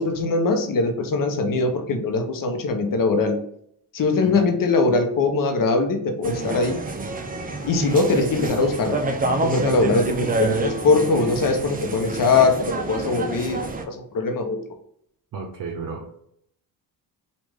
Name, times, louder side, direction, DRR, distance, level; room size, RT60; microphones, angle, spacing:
voice 1, 0.0-3.4 3.9-6.8 7.6-9.0 9.4-12.6 12.9-13.6 13.9-14.6, left 3 dB, 50° left, 5 dB, 0.8 m, -21 dB
sound 1, 6.2-13.8, right 2 dB, 20° right, 0.4 m, -28 dB
voice 2, 15.3-16.2, right 4 dB, 50° right, 1 dB, 0.7 m, -33 dB
3.1 x 2.5 x 3.5 m, 0.68 s
cardioid pair, 75°, 44 cm